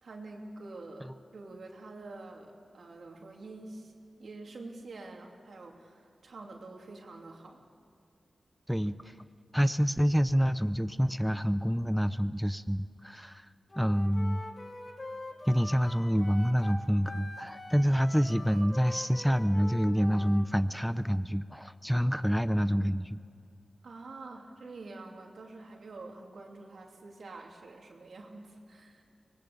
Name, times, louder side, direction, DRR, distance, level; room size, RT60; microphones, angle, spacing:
voice 1, 0.0-3.9 4.2-7.6 23.8-29.0, right 2 dB, 80° right, 1 dB, 3.0 m, -47 dB
voice 2, 8.7-9.2 9.5-13.5 13.8-14.4 15.5-23.2, equal, ahead, 12 dB, 0.6 m, -27 dB
Wind instrument woodwind instrument, 13.7-20.5, left 2 dB, 40° left, 2.4 m, -44 dB
25.0 x 19.5 x 7.0 m, 2.3 s
cardioid pair, 60°, 0 cm